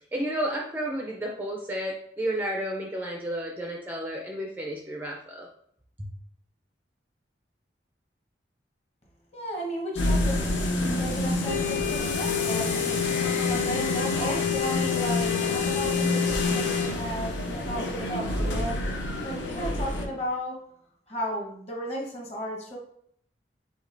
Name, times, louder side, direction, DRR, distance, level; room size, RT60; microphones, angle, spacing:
voice 1, 0.1-5.5 6.0-6.1, right 1 dB, 10° right, 0 dB, 0.4 m, -32 dB
voice 2, 9.3-10.4 10.7-13.0 13.5-18.8 19.2-20.6 21.1-22.8, equal, 35° left, -1 dB, 1.1 m, -34 dB
sound 1, 9.9-20.1, left 3 dB, 85° left, 0.8 m, -27 dB
5.1 x 3.6 x 2.6 m, 0.69 s
head